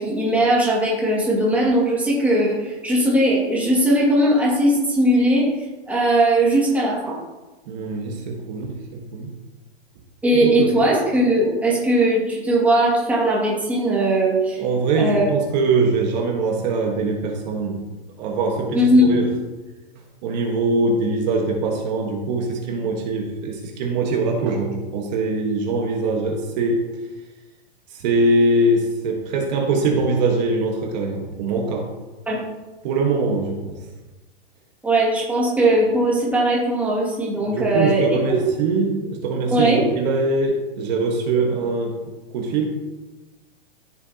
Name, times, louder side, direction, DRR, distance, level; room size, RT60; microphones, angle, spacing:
voice 1, 0.0-5.5 5.9-7.2 10.2-14.6 15.0-15.3 18.7-19.2 32.3-32.4 34.8-38.4 39.5-39.8, right 1 dB, 5° right, -5 dB, 2.0 m, -19 dB
voice 2, 7.7-9.3 10.4-10.7 14.6-17.9 18.2-19.3 20.2-26.8 27.9-31.9 32.8-33.8 37.4-41.9 42.3-42.7, right 3 dB, 45° right, 1 dB, 1.4 m, -22 dB
14.0 x 7.2 x 2.8 m, 1.1 s
hypercardioid pair, 150°, 31 cm